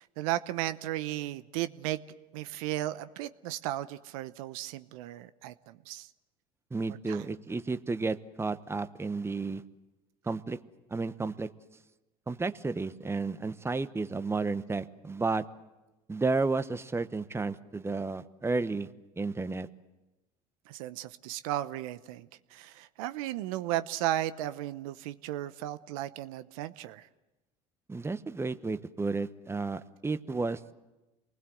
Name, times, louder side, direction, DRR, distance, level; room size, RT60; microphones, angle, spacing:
voice 1, 0.0-2.0 2.3-6.1 7.1-7.3 20.7-27.1, right 14 dB, 75° right, 13 dB, 0.9 m, -35 dB
voice 2, 6.7-9.6 10.2-10.6 10.9-11.5 12.3-15.4 16.1-18.9 19.2-19.7 27.9-30.6, right 3 dB, 15° right, 12 dB, 1.1 m, -32 dB
28.0 x 20.0 x 7.8 m, 1.1 s
hypercardioid pair, 85°, 18 cm